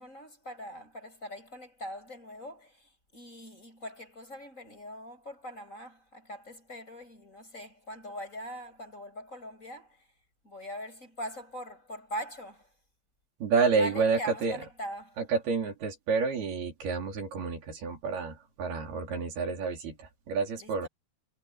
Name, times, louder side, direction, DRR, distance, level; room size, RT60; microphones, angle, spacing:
voice 1, 0.0-10.1 10.4-12.7 13.8-15.2 20.6-20.9, equal, 20° left, 7.9 m, -42 dB
voice 2, 13.4-14.6 15.2-20.9, right 4 dB, 80° right, 6.3 m, -29 dB
omnidirectional pair, 4.4 m